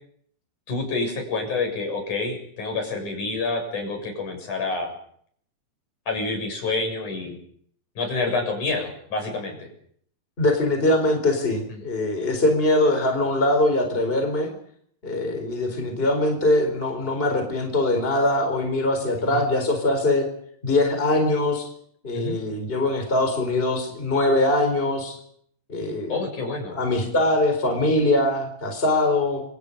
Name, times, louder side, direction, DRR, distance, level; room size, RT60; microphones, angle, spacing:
voice 1, 0.7-4.9 6.1-7.4 8.0-9.7 19.3-19.4 22.1-22.4 26.1-26.8, left 3 dB, 65° left, 3 dB, 8.3 m, -28 dB
voice 2, 10.4-14.5 15.0-20.2 20.6-21.7 22.0-25.1 25.7-26.2 26.7-29.4, left 2 dB, 15° left, 5 dB, 4.6 m, -22 dB
27.0 x 26.5 x 5.4 m, 0.64 s
omnidirectional pair, 3.8 m